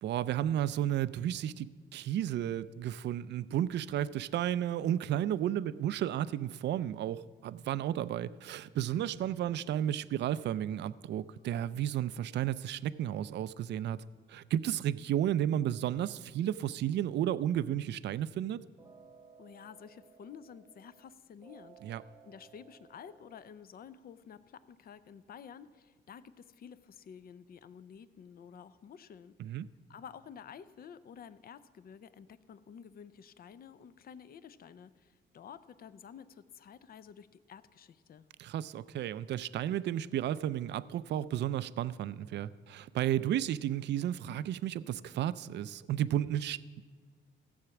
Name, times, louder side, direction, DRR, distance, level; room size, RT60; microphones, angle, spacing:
voice 1, 0.0-14.0 14.3-18.6 21.8-22.0 29.4-29.7 38.4-46.8, right 11 dB, 60° right, 17 dB, 0.4 m, -33 dB
sound 1, 18.8-21.1 21.4-23.5, right 5 dB, 20° right, 0.9 m, -58 dB
voice 2, 19.4-21.8 22.2-29.3 29.9-38.3, left 7 dB, 50° left, 15 dB, 0.6 m, -51 dB
15.0 x 7.2 x 5.9 m, 1.5 s
cardioid pair, 90°, 20 cm